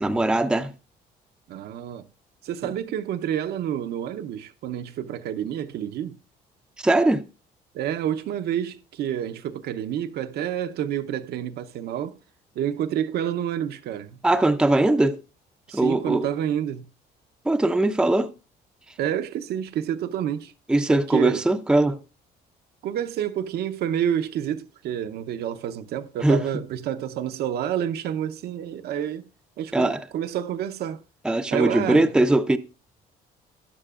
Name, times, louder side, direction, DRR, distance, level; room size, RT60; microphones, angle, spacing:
voice 1, 0.0-0.7 2.6-2.7 6.8-7.2 14.2-15.2 15.7-16.3 17.4-18.3 20.7-22.0 26.2-26.4 29.7-30.0 31.2-32.6, right 2 dB, 5° right, 0.5 m, -21 dB
voice 2, 1.5-2.1 2.4-6.2 7.7-12.2 12.6-14.2 15.7-16.8 19.0-20.5 20.9-21.4 22.8-29.2 29.6-31.0 31.5-32.1, right 10 dB, 70° right, 0.8 m, -29 dB
13.5 x 9.9 x 2.4 m
cardioid pair, 110°, 17 cm